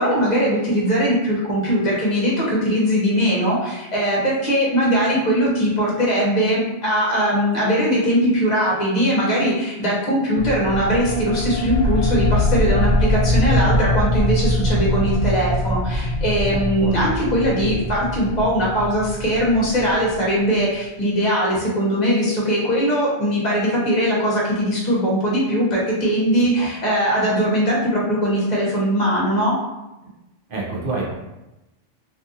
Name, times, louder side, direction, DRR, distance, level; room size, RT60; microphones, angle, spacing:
voice 1, 0.0-29.5, equal, 40° left, -5 dB, 1.0 m, -20 dB
sound 1, 10.4-20.6, left 1 dB, 75° left, 0.9 m, -22 dB
voice 2, 16.5-17.1 17.7-17.9 26.6-26.7 30.5-31.1, right 3 dB, 50° right, -4 dB, 0.9 m, -28 dB
2.7 x 2.5 x 2.7 m, 0.99 s
omnidirectional pair, 1.2 m